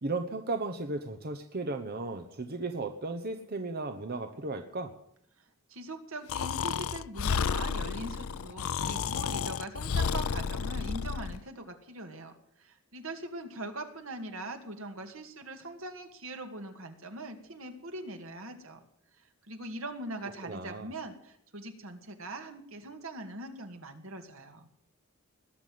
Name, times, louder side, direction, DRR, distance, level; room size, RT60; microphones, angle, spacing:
voice 1, 0.0-4.9 20.4-20.9, right 3 dB, 45° right, 7 dB, 1.1 m, -35 dB
voice 2, 5.4-18.8 19.2-24.7, right 2 dB, 70° right, 6 dB, 2.3 m, -42 dB
Breathing, 6.3-11.4, left 6 dB, 75° left, 0.5 m, -31 dB
20.5 x 7.0 x 9.5 m, 0.71 s
head